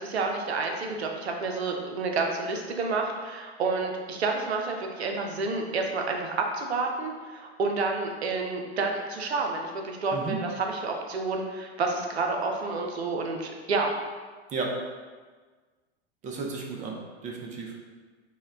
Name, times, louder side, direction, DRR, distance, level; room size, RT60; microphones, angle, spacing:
voice 1, 0.0-13.9, right 3 dB, 75° right, 2 dB, 0.6 m, -29 dB
voice 2, 16.2-17.7, right 4 dB, 25° right, 1 dB, 0.5 m, -33 dB
4.2 x 2.2 x 3.4 m, 1.4 s
figure-of-eight pair, 90°, 33 cm